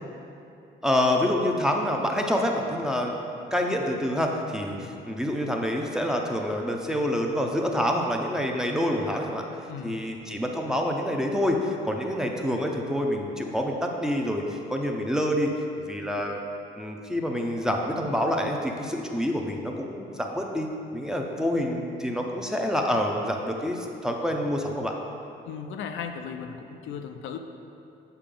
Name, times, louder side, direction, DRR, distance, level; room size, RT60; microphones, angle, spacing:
voice 1, 0.8-3.2 3.5-9.5 9.8-15.5 15.8-16.4 16.8-25.0, equal, 5° right, 1 dB, 0.6 m, -27 dB
voice 2, 9.7-10.0 25.4-27.4, left 7 dB, 80° left, 6 dB, 0.4 m, -36 dB
6.7 x 4.7 x 3.8 m, 2.7 s
cardioid pair, 90°, 20 cm